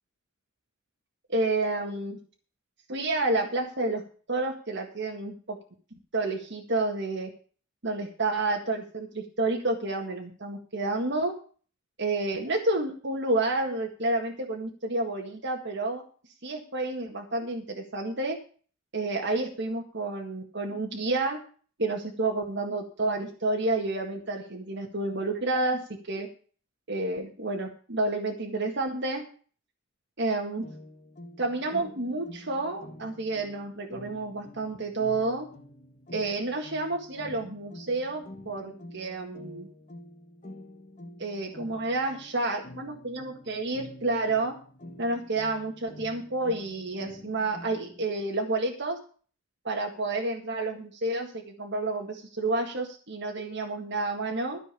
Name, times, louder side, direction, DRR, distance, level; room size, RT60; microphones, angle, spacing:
voice 1, 1.3-2.2 2.9-4.0 4.3-5.6 6.1-7.3 7.8-11.3 12.0-16.0 16.4-18.4 18.9-21.4 21.8-26.3 26.9-29.2 30.2-30.7 31.4-35.5 36.1-39.7 41.2-44.5 45.0-49.0 49.6-54.6, right 2 dB, 60° right, 1 dB, 1.8 m, -30 dB
sound 1, 30.6-48.1, left 1 dB, 40° left, 1.6 m, -48 dB
14.0 x 5.3 x 8.3 m, 0.40 s
head